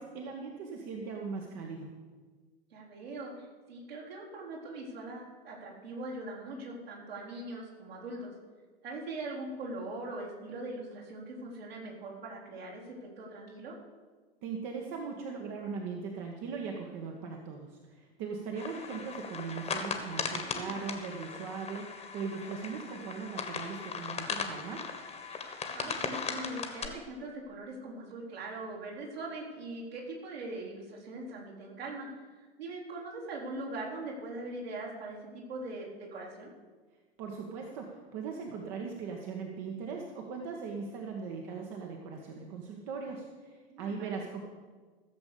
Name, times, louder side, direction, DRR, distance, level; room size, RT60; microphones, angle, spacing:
voice 1, 0.0-1.9 14.4-24.9 37.2-44.4, right 5 dB, 45° right, 1 dB, 1.5 m, -39 dB
voice 2, 2.7-8.3 8.8-13.8 20.4-20.8 25.7-36.5 43.7-44.2, right 2 dB, 70° right, -5 dB, 4.1 m, -41 dB
sound 1, 18.6-26.9, left 5 dB, 20° left, 1.5 m, -38 dB
15.0 x 7.3 x 6.8 m, 1.4 s
figure-of-eight pair, 85°, 31 cm